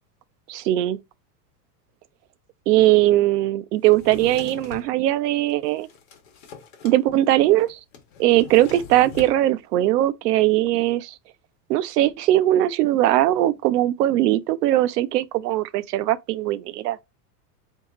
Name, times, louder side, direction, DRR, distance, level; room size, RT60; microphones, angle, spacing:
voice 1, 0.5-1.0 2.7-5.9 6.8-7.8 8.2-11.1 11.7-17.0, right 14 dB, 80° right, 0.7 m, -20 dB
Drawer open or close, 3.9-4.9 5.5-7.0 7.2-7.3 7.6-9.4, left 6 dB, 40° left, 1.2 m, -41 dB
3.9 x 2.8 x 3.6 m
supercardioid pair, 180°, 48 cm